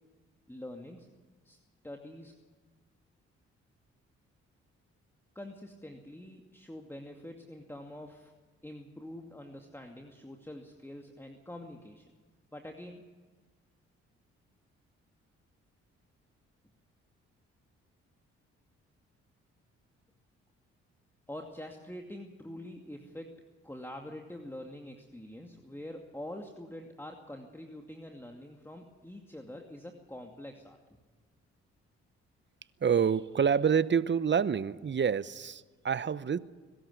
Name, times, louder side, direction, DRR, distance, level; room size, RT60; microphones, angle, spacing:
voice 1, 0.5-1.1 1.4-1.6 1.8-2.3 5.3-8.3 8.6-12.0 12.5-13.0 21.3-23.3 23.6-30.8, left 1 dB, 10° left, 2.4 m, -45 dB
voice 2, 32.8-36.4, right 7 dB, 40° right, 0.9 m, -27 dB
22.5 x 13.0 x 9.7 m
supercardioid pair, 50°, 30 cm